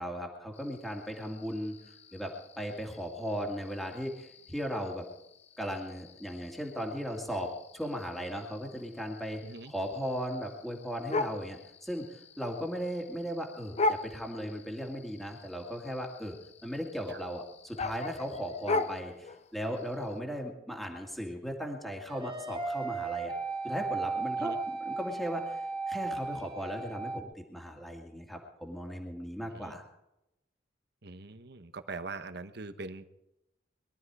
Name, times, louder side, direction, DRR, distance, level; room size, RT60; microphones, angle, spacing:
voice 1, 0.0-1.8 2.1-5.0 5.6-9.4 9.7-16.4 16.6-23.3 23.6-24.6 24.9-25.6 25.9-29.8, equal, ahead, 0 dB, 2.1 m, -37 dB
sound 1, 0.5-20.2, left 2 dB, 35° left, 0.7 m, -40 dB
voice 2, 9.4-9.7 17.1-17.2 24.4-24.6 29.5-29.8 31.0-33.1, right 3 dB, 60° right, 9 dB, 1.1 m, -42 dB
sound 2, 22.1-27.2, right 4 dB, 30° right, 2.0 m, -35 dB
22.0 x 12.5 x 4.8 m, 0.89 s
head